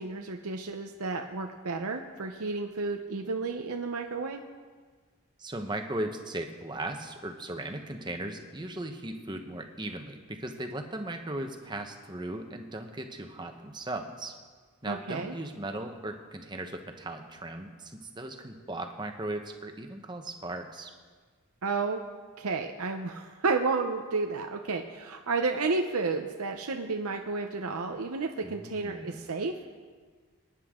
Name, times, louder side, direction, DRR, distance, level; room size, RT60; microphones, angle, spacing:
voice 1, 0.0-4.4 14.8-15.3 21.6-22.0 22.4-29.5, right 4 dB, 80° right, 4 dB, 0.8 m, -31 dB
voice 2, 5.4-14.3 14.8-20.9 28.4-29.2, right 1 dB, 20° right, 5 dB, 1.0 m, -37 dB
25.5 x 9.9 x 3.8 m, 1.5 s
head